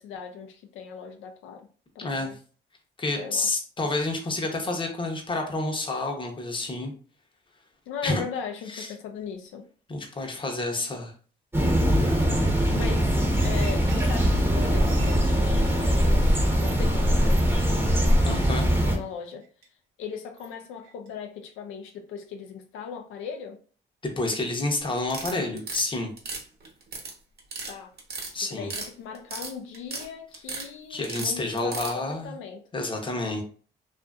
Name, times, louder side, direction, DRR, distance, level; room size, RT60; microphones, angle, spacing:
voice 1, 0.0-1.7 1.9-2.3 3.1-3.5 7.9-9.7 10.7-10.9 12.7-19.4 20.0-23.6 27.7-27.9 28.5-32.7, left 6 dB, 85° left, 0.5 m, -39 dB
voice 2, 2.0-2.4 3.0-6.9 8.0-8.2 8.7-8.9 9.9-11.1 18.3-18.7 24.2-26.1 28.3-28.7 30.9-32.3 32.7-33.4, left 2 dB, 25° left, 0.7 m, -29 dB
sound 1, 11.5-19.0, equal, 10° right, 0.7 m, -22 dB
sound 2, 13.4-16.7 17.0-17.7 18.0-18.1 18.8-19.0 19.4-19.6 20.4-20.5 20.8-21.1, right 5 dB, 90° right, 0.7 m, -45 dB
sound 3, 25.0-25.8 26.2-27.1 27.4-27.7 28.0-28.9 29.1-30.1 30.3-30.7 31.0-31.9, right 4 dB, 55° right, 0.9 m, -35 dB
2.6 x 2.5 x 2.3 m
cardioid pair, 90°, 20 cm